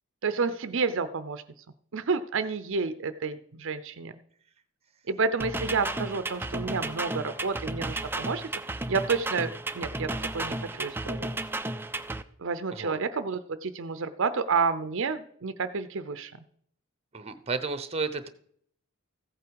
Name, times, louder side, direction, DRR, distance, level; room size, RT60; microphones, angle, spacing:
voice 1, 0.2-1.4 1.9-4.2 5.1-11.3 12.4-16.4, right 4 dB, 60° right, 12 dB, 0.6 m, -30 dB
sound 1, 5.4-12.2, right 2 dB, 10° right, 0.4 m, -33 dB
voice 2, 17.1-18.3, right 4 dB, 30° right, 11 dB, 0.8 m, -32 dB
15.0 x 8.5 x 4.7 m, 0.64 s
head